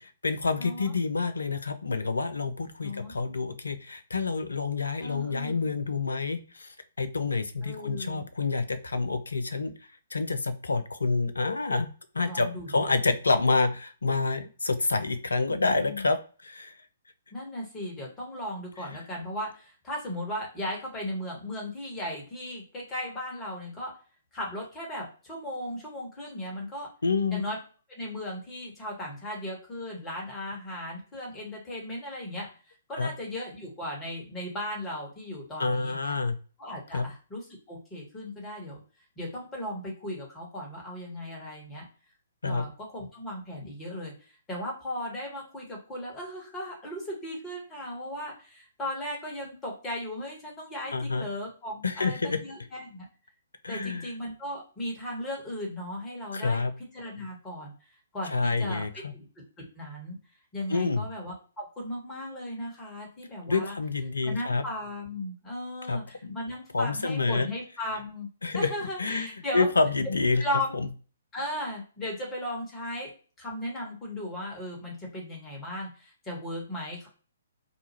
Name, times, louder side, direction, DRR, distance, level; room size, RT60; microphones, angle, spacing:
voice 1, 0.0-9.7 10.1-11.9 12.1-16.7 27.0-27.4 33.0-33.1 35.6-36.4 36.9-37.1 42.4-42.7 50.9-51.3 51.8-52.4 53.6-54.1 56.3-56.7 58.3-59.1 60.7-61.1 63.5-64.6 65.9-66.4 66.7-67.5 68.4-68.7 69.0-69.3 69.5-70.4 70.7-70.9, left 3 dB, 70° left, 10 dB, 0.4 m, -28 dB
voice 2, 0.6-0.9 2.8-3.1 5.0-5.7 7.6-8.3 12.2-13.0 15.5-16.1 17.3-23.9 24.3-26.9 27.3-27.6 27.9-32.5 32.9-36.1 36.6-38.8 39.2-41.8 42.4-53.1 53.7-56.6 56.9-57.7 58.1-59.3 59.6-60.2 60.5-63.8 64.2-68.3 68.5-69.7 70.4-70.7 71.3-73.1 73.4-77.1, left 1 dB, 15° left, -2 dB, 1.3 m, -36 dB
2.7 x 2.3 x 2.9 m, 0.38 s
figure-of-eight pair, 125°, 0 cm